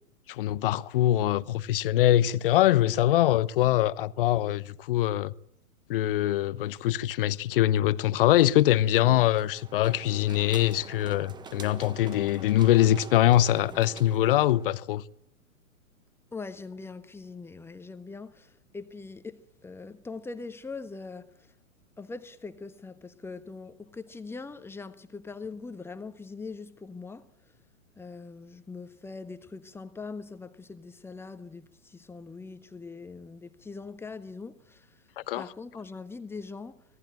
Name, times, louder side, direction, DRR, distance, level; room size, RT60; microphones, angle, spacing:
voice 1, 0.3-5.3 5.9-15.0 35.2-35.4, left 13 dB, 40° left, 1.0 m, -23 dB
sound 1, 9.4-14.9, right 4 dB, 10° right, 1.2 m, -45 dB
voice 2, 16.3-21.5 22.0-27.3 28.0-35.0 35.3-36.8, left 4 dB, 5° left, 1.3 m, -42 dB
25.5 x 18.0 x 8.9 m
figure-of-eight pair, 115°, 43 cm